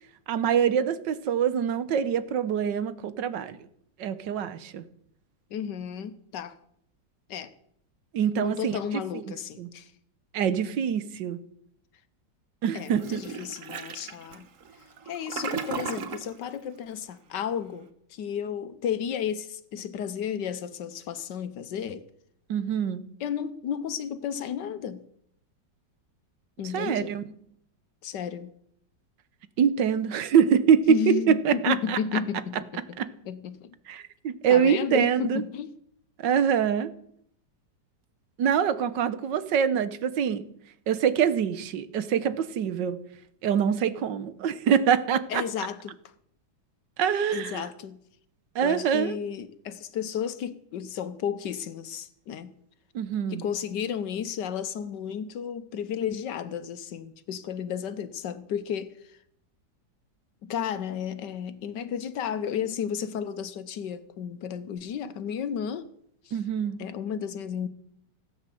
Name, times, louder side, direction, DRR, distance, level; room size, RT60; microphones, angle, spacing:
voice 1, 0.3-3.6 4.0-4.8 8.1-8.8 9.1-9.7 10.3-11.4 12.6-13.2 22.5-23.0 26.7-27.2 29.6-32.2 33.0-33.1 33.9-35.4 36.2-36.9 38.4-40.4 40.9-43.0 43.4-45.4 47.0-47.6 48.5-49.2 52.9-53.4 66.3-66.8, right 8 dB, 75° right, 1.6 m, -25 dB
voice 2, 5.5-6.6 7.3-7.5 8.3-9.9 12.7-14.5 15.1-22.0 23.2-25.0 26.6-27.1 28.0-28.5 30.9-32.8 33.3-33.7 34.5-35.7 45.3-46.0 47.3-48.0 48.6-52.5 53.3-59.2 60.4-65.9 66.2-66.4 66.8-67.7, left 8 dB, 75° left, 1.5 m, -33 dB
Toilet flush, 12.9-16.3, right 6 dB, 50° right, 1.3 m, -36 dB
16.5 x 8.9 x 7.6 m
omnidirectional pair, 2.0 m